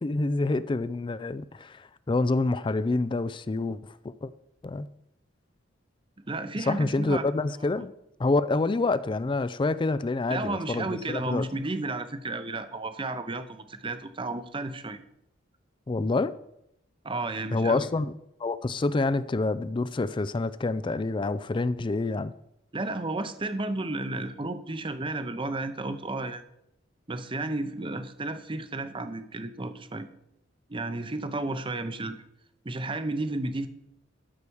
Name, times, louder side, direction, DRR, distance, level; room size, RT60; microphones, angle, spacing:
voice 1, 0.0-4.3 4.6-4.9 6.6-7.9 8.2-11.4 15.9-16.3 17.5-18.1 18.4-22.3, left 3 dB, 25° left, 15 dB, 0.4 m, -27 dB
voice 2, 6.2-7.2 10.3-15.0 17.0-17.9 22.7-26.4 27.1-30.1 30.7-32.2 32.6-33.7, right 2 dB, 25° right, 10 dB, 0.8 m, -32 dB
12.5 x 4.9 x 7.1 m, 0.80 s
head